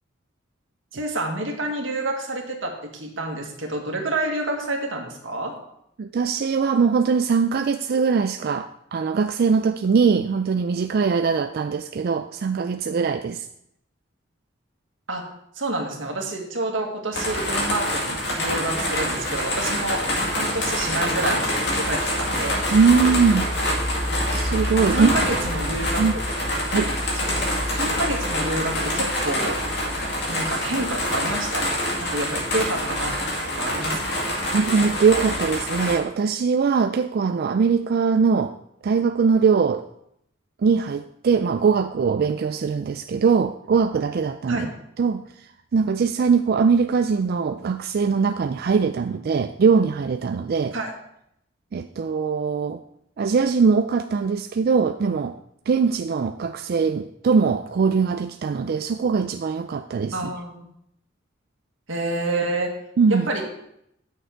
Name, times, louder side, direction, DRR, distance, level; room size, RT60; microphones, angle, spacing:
voice 1, 0.9-5.5 15.1-15.3 15.6-20.0 20.3-22.6 24.9-26.2 27.1-29.6 30.3-33.1 33.6-34.2 44.5-44.7 50.7-50.9 60.1-60.7 61.9-62.7 63.1-63.4, right 2 dB, 85° right, 2 dB, 1.8 m, -28 dB
voice 2, 6.0-13.5 22.7-23.5 24.3-25.1 26.0-26.1 26.7-26.9 34.5-38.5 38.8-39.8 40.6-44.7 45.0-45.2 45.7-50.7 51.7-52.8 53.2-55.4 55.7-60.3 63.0-63.3, right 5 dB, 55° right, 7 dB, 0.3 m, -21 dB
sound 1, 17.1-36.0, left 1 dB, 65° left, 2.1 m, -25 dB
9.0 x 6.6 x 4.6 m, 0.76 s
head